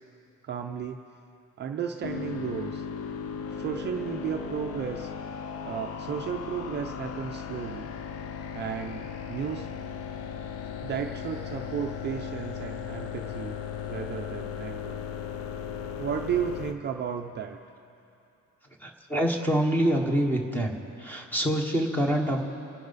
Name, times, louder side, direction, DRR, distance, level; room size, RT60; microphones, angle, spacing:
voice 1, 0.4-1.0 1.6-2.9 3.5-5.1 5.6-7.9 8.5-9.7 10.8-13.6 13.9-15.0 16.0-17.6, right 8 dB, 35° right, 3 dB, 0.5 m, -33 dB
sound 1, 2.0-16.7, left 7 dB, 45° left, 0.6 m, -36 dB
voice 2, 18.8-20.7 21.0-22.4, equal, 5° left, 2 dB, 1.1 m, -26 dB
29.0 x 10.5 x 4.0 m, 2.7 s
cardioid pair, 180°, 32 cm